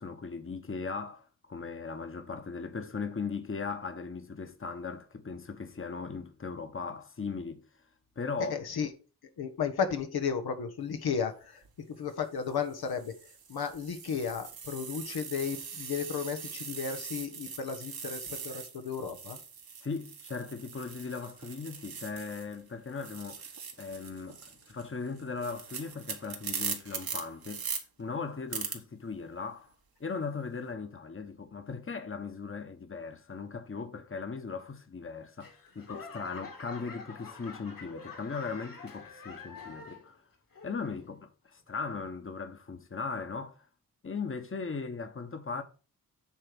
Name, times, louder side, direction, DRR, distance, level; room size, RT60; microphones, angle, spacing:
voice 1, 0.0-7.6 8.2-8.6 19.8-23.5 23.8-27.7 28.0-29.7 30.0-40.2 40.6-43.7 44.0-45.6, left 4 dB, 35° left, 1.2 m, -38 dB
voice 2, 8.4-8.9 9.4-13.1 13.5-19.4, left 6 dB, 80° left, 1.2 m, -34 dB
sound 1, 11.4-11.7 12.4-22.6 22.9-27.8 28.5-28.8, right 6 dB, 70° right, 1.6 m, -41 dB
Laughter / Clapping / Crowd, 35.4-40.2 40.5-41.0 41.6-41.7, left 4 dB, 60° left, 2.3 m, -46 dB
8.5 x 3.4 x 5.9 m
cardioid pair, 45°, 37 cm